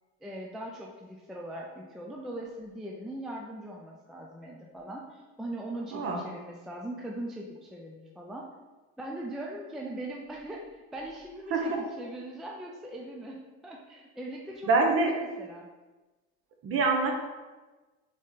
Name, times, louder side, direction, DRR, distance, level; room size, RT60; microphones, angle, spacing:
voice 1, 0.2-8.5 9.0-15.7, right 1 dB, ahead, -1 dB, 0.3 m, -40 dB
voice 2, 5.9-6.2 11.5-11.8 14.7-15.1 16.6-17.1, right 3 dB, 40° right, 2 dB, 0.9 m, -25 dB
4.0 x 3.7 x 3.6 m, 1.2 s
supercardioid pair, 120°, 34 cm